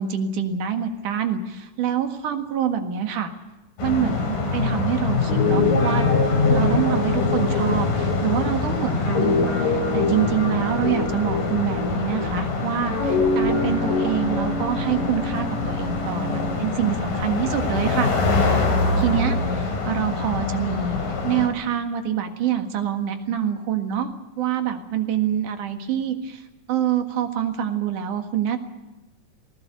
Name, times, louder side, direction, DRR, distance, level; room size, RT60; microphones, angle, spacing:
voice 1, 0.0-3.3 3.8-6.1 6.5-18.2 19.0-21.0 21.2-24.1 24.4-26.4 26.7-28.6, right 9 dB, 70° right, 6 dB, 3.2 m, -26 dB
sound 1, 3.8-21.5, left 3 dB, 80° left, 5.2 m, -24 dB
Guitar, 5.2-12.4 12.8-16.6, left 3 dB, 60° left, 5.0 m, -26 dB
19.5 x 19.0 x 8.2 m, 1.1 s
omnidirectional pair, 3.8 m